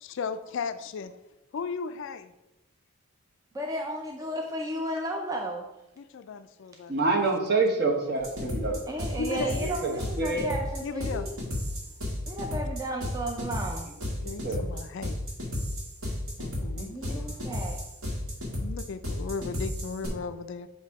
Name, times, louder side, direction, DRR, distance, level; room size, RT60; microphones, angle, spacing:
voice 1, 0.2-1.1 1.5-2.3 6.0-6.9 9.1-9.6 10.8-11.3 14.2-15.2 16.4-17.4 18.6-20.7, left 5 dB, 55° left, 0.3 m, -36 dB
voice 2, 3.5-5.7 8.9-11.3 12.3-13.9 16.8-17.8, right 1 dB, 15° right, 0.4 m, -34 dB
voice 3, 6.9-8.8 9.6-10.5 14.2-14.6, right 3 dB, 45° right, 1.0 m, -27 dB
sound 1, 8.2-20.1, left 1 dB, 70° right, 1.8 m, -33 dB
7.6 x 2.7 x 4.6 m
head